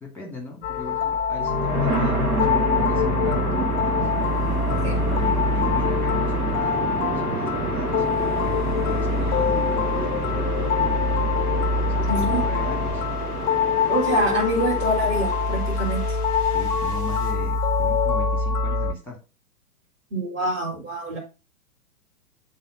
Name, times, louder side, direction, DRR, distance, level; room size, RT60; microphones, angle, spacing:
voice 1, 0.0-4.0 4.7-10.5 11.8-13.0 16.5-19.2, left 3 dB, 5° left, 2 dB, 2.2 m, -37 dB
sound 1, 0.6-18.9, left 5 dB, 30° left, 0.7 m, -24 dB
sound 2, 1.3-17.3, right 2 dB, 75° right, 1.9 m, -29 dB
voice 2, 12.1-12.4 13.9-16.0 20.1-21.2, right 1 dB, 25° right, -3 dB, 4.6 m, -25 dB
7.3 x 3.7 x 5.3 m, 0.31 s
figure-of-eight pair, 115°, 45 cm